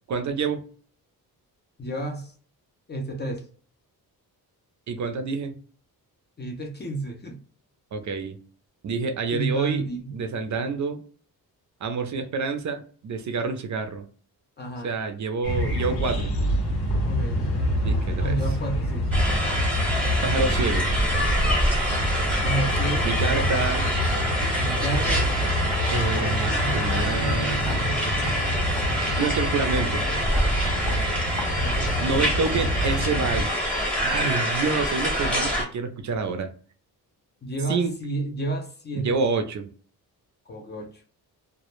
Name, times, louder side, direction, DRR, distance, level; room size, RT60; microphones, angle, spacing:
voice 1, 0.1-0.6 4.9-5.5 7.9-8.4 8.8-9.8 10.1-11.0 11.8-14.0 14.8-16.3 17.8-18.4 20.2-20.9 23.0-23.9 25.9-27.8 29.1-30.1 32.0-33.6 34.0-36.5 37.7-37.9 38.9-39.7, right 4 dB, 50° right, 0.5 m, -28 dB
voice 2, 1.8-2.3 2.9-3.5 6.4-7.4 9.3-10.1 14.6-14.9 17.0-17.5 18.2-19.1 22.4-23.6 24.6-25.3 31.6-32.7 37.4-39.2 40.5-41.0, right 2 dB, 30° left, 0.5 m, -31 dB
sound 1, 15.4-33.5, equal, 80° left, 0.8 m, -26 dB
sound 2, 19.1-35.6, equal, 5° left, 0.9 m, -26 dB
2.1 x 2.0 x 2.9 m
cardioid pair, 120°, 38 cm